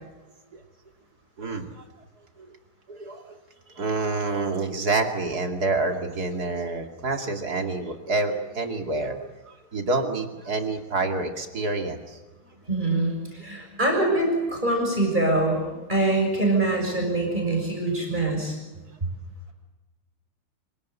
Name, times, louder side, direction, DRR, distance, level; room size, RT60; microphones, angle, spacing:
voice 1, 1.4-1.8 2.9-3.4 3.8-9.3 9.7-12.2, right 3 dB, 45° right, 4 dB, 3.0 m, -27 dB
voice 2, 12.7-15.6 15.9-18.6, right 2 dB, 20° right, 1 dB, 6.6 m, -24 dB
26.5 x 18.0 x 8.3 m, 1.2 s
omnidirectional pair, 2.4 m